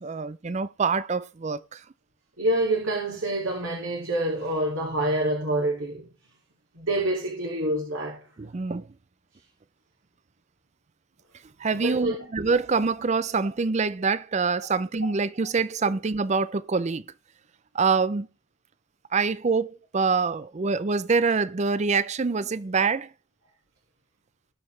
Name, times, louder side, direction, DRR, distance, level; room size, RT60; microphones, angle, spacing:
voice 1, 0.0-1.8 8.4-8.9 11.6-17.0 17.7-18.3 19.1-23.1, right 4 dB, 35° right, 0.4 m, -25 dB
voice 2, 2.4-6.1 6.7-8.2 11.7-12.2, right 1 dB, 75° right, 2.5 m, -27 dB
19.0 x 6.3 x 3.3 m
head